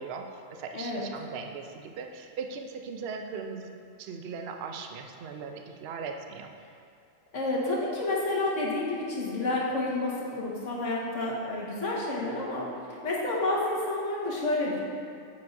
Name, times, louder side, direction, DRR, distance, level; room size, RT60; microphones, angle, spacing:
voice 1, 0.0-3.7 4.0-6.5, right 5 dB, 60° right, 4 dB, 0.8 m, -39 dB
voice 2, 0.7-1.1 7.3-12.7 13.0-14.8, left 2 dB, 90° left, -5 dB, 1.8 m, -29 dB
9.3 x 8.5 x 2.6 m, 2.4 s
omnidirectional pair, 1.2 m